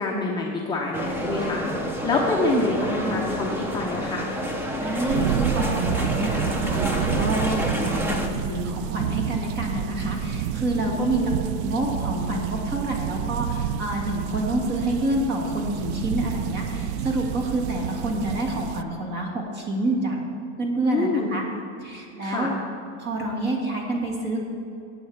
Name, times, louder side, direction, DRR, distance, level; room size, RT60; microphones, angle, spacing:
voice 1, 0.0-1.6 2.0-4.3 11.0-11.4 20.8-21.3 22.2-22.5, left 3 dB, 10° left, -4 dB, 0.7 m, -26 dB
sound 1, 0.9-8.3, equal, 5° right, 0.3 m, -29 dB
voice 2, 2.5-3.4 4.8-11.2 11.6-20.2 20.6-21.4 21.8-22.5 23.0-24.4, right 1 dB, 30° right, 0 dB, 1.8 m, -28 dB
sound 2, 5.1-18.8, right 9 dB, 65° right, 0.5 m, -29 dB
17.5 x 8.7 x 3.3 m, 2.6 s
supercardioid pair, 165°, 36 cm